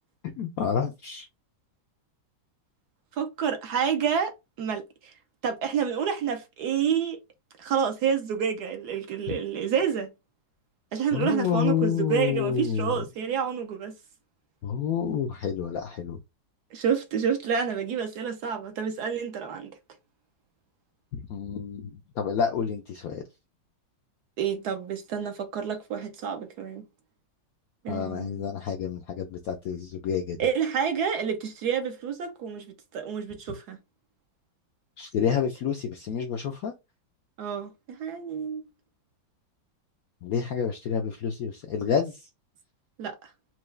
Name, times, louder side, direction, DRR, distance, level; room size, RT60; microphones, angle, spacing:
voice 1, 0.4-1.3 11.1-13.0 14.6-16.2 21.1-23.2 27.9-30.4 35.0-36.7 40.2-42.3, left 7 dB, 75° left, 0.8 m, -29 dB
voice 2, 3.2-4.8 5.4-7.2 7.6-10.1 10.9-13.9 16.7-19.7 24.4-26.8 27.8-28.4 30.4-32.7 32.9-33.8 37.4-38.6 43.0-43.3, right 7 dB, 70° right, 1.0 m, -28 dB
4.5 x 2.3 x 3.1 m
omnidirectional pair, 2.1 m